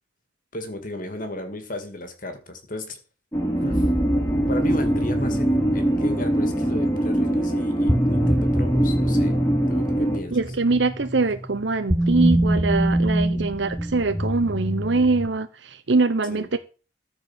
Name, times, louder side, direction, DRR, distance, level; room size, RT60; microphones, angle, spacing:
voice 1, 0.5-3.0 3.6-3.9 4.5-9.3 9.7-10.4 13.3-13.5 16.3-16.5, left 1 dB, 45° left, 2.2 m, -35 dB
sound 1, 3.3-10.2, right 1 dB, 10° left, 2.6 m, -23 dB
sound 2, 3.7-15.3, right 1 dB, 5° right, 1.1 m, -26 dB
voice 2, 10.3-16.6, right 3 dB, 75° right, 0.9 m, -23 dB
14.0 x 4.9 x 7.3 m
head